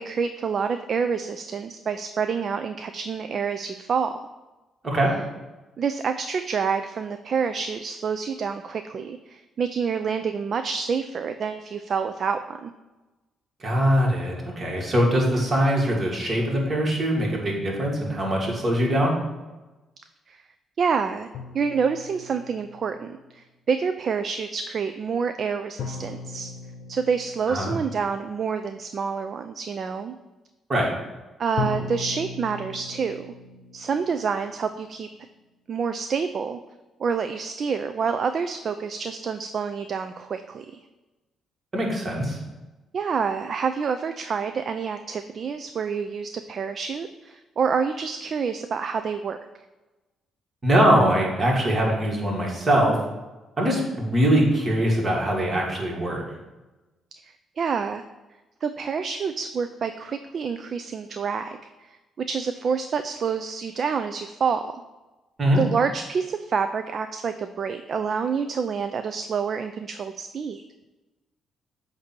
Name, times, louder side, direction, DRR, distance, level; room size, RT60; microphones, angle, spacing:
voice 1, 0.0-4.3 5.8-12.7 20.3-20.4 20.8-21.3 21.5-26.5 26.9-30.1 31.4-33.3 33.7-35.1 35.7-36.6 37.0-40.8 42.9-49.4 57.2-58.0 58.6-64.8 65.6-70.6, right 6 dB, 50° right, 8 dB, 0.3 m, -28 dB
voice 2, 13.6-19.1 27.5-27.7 30.7-30.9 41.7-42.4 50.6-53.0 53.6-56.2 65.4-65.6, equal, 35° right, -2 dB, 1.9 m, -22 dB
sound 1, 21.3-23.1 25.8-28.6 31.6-35.4, left 4 dB, 85° left, 0.7 m, -38 dB
8.0 x 2.7 x 6.0 m, 1.1 s
cardioid pair, 90°, 0 cm